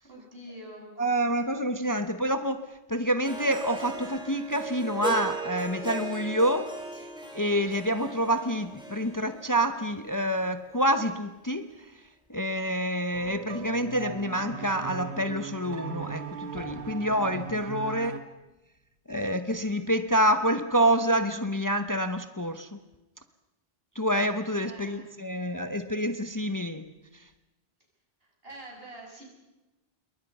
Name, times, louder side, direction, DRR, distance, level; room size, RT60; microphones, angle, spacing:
voice 1, 0.0-0.9 17.9-18.1 24.6-25.1 28.2-29.2, right 1 dB, 65° right, -1 dB, 7.7 m, -45 dB
voice 2, 1.0-7.0 7.3-12.0 12.3-18.1 19.1-22.8 23.9-26.9 27.1-27.3, equal, 20° left, 9 dB, 1.0 m, -27 dB
Harp, 3.2-10.4, right 2 dB, 5° right, 4.4 m, -37 dB
sound 1, 13.1-18.2, right 5 dB, 80° right, 1.9 m, -38 dB
28.0 x 23.0 x 5.5 m, 1.0 s
omnidirectional pair, 1.1 m